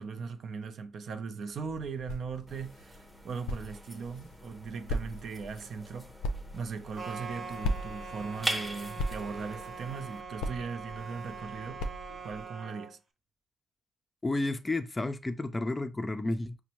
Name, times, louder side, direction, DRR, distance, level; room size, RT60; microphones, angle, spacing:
voice 1, 0.0-6.1 6.5-11.8 12.2-13.0, right 5 dB, 60° right, 0.5 m, -39 dB
sound 1, 1.5-12.5, left 1 dB, 90° left, 0.4 m, -39 dB
sound 2, 2.5-10.2, right 1 dB, ahead, 0.8 m, -42 dB
sound 3, 7.0-12.9, right 5 dB, 40° right, 0.9 m, -43 dB
voice 2, 14.2-16.6, left 2 dB, 20° left, 0.4 m, -31 dB
5.2 x 2.1 x 2.9 m
cardioid pair, 90°, 0 cm